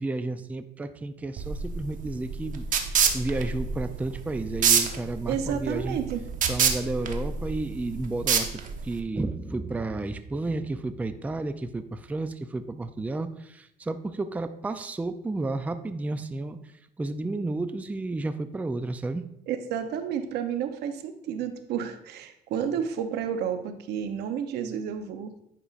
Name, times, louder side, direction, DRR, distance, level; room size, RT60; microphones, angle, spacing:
voice 1, 0.0-6.0 6.5-16.6 17.0-19.2, right 2 dB, 10° right, 10 dB, 0.3 m, -32 dB
sound 1, 1.4-9.0, right 6 dB, 50° right, 0.8 m, -27 dB
voice 2, 5.3-6.3 19.5-25.4, right 8 dB, 80° right, 8 dB, 0.7 m, -31 dB
10.0 x 5.3 x 2.4 m, 0.77 s
cardioid pair, 110°, 17 cm